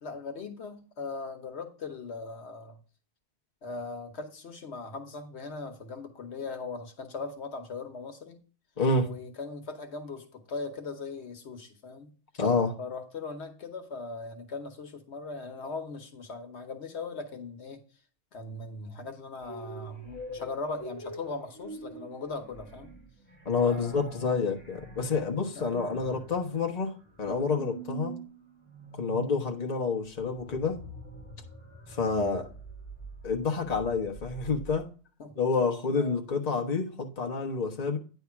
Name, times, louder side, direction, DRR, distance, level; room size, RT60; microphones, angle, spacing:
voice 1, 0.0-2.8 3.6-8.4 9.0-12.1 12.8-17.8 18.3-22.9 23.6-24.4 25.5-25.7 35.2-35.4 36.0-36.2, left 3 dB, 80° left, 1.4 m, -39 dB
voice 2, 8.8-9.1 12.4-12.7 23.4-26.9 27.2-28.1 28.9-30.8 31.9-32.5 33.2-34.9 35.4-38.0, left 4 dB, 40° left, 1.1 m, -28 dB
sound 1, 19.4-34.8, right 2 dB, 10° left, 2.1 m, -45 dB
9.6 x 3.5 x 5.7 m
omnidirectional pair, 1.1 m